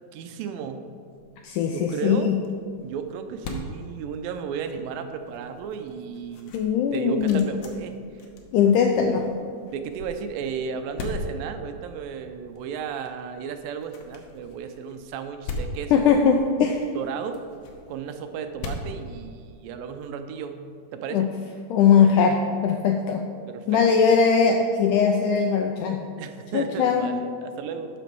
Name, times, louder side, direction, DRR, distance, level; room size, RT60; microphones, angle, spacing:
voice 1, 0.1-0.8 1.7-2.4 2.8-6.6 6.9-7.9 9.7-16.2 17.0-17.4 17.9-20.6 20.9-21.3 23.5-23.8 26.2-27.9, right 7 dB, 80° right, 7 dB, 2.3 m, -34 dB
sound 1, 1.2-19.9, left 2 dB, 65° left, 2.1 m, -40 dB
voice 2, 1.4-2.4 6.5-7.5 8.5-9.3 15.9-16.9 21.1-21.3 21.7-23.3 23.7-26.0 26.5-27.1, left 6 dB, 90° left, 3 dB, 1.8 m, -20 dB
12.0 x 6.0 x 4.6 m, 2.3 s
omnidirectional pair, 4.2 m